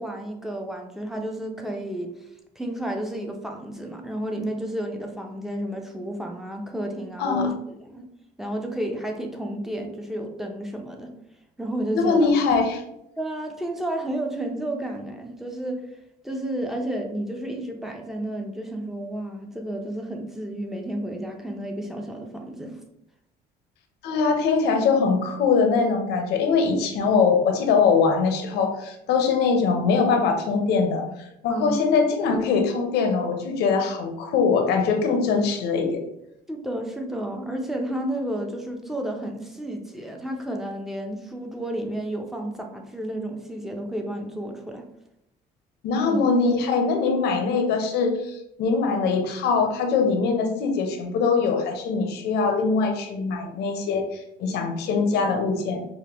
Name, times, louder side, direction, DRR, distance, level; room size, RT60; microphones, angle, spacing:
voice 1, 0.0-2.1 2.6-8.0 8.4-11.1 11.6-12.6 13.2-15.8 16.2-22.7 31.5-31.8 36.5-44.8 46.0-46.2, right 1 dB, ahead, 2 dB, 0.6 m, -31 dB
voice 2, 11.9-12.8 24.0-36.0 45.8-55.9, left 5 dB, 80° left, 4 dB, 0.7 m, -22 dB
5.0 x 2.2 x 2.9 m, 0.83 s
cardioid pair, 110°, 17 cm